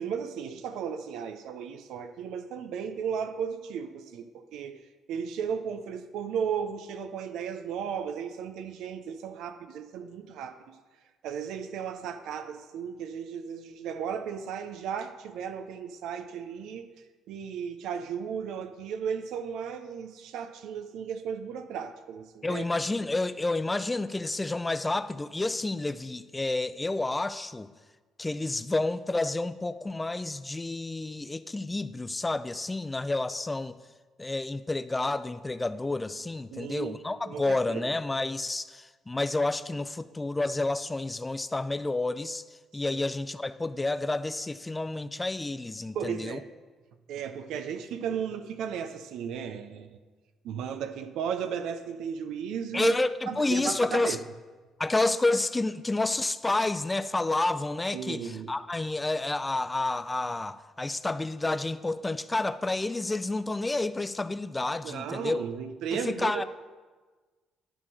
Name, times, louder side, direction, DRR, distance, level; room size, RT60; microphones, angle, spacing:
voice 1, 0.0-4.8 5.1-10.7 11.2-16.9 17.3-22.6 36.5-37.0 37.3-37.9 42.9-43.0 45.9-46.5 47.1-50.0 50.4-53.0 53.3-54.2 57.9-58.5 64.8-66.4, right 7 dB, 75° right, 0.5 m, -35 dB
voice 2, 22.4-27.7 28.2-33.8 34.2-42.4 42.7-46.4 52.7-54.2 54.8-65.4 65.9-66.4, left 2 dB, 20° left, 0.4 m, -30 dB
11.0 x 3.7 x 6.2 m
supercardioid pair, 65°, 0 cm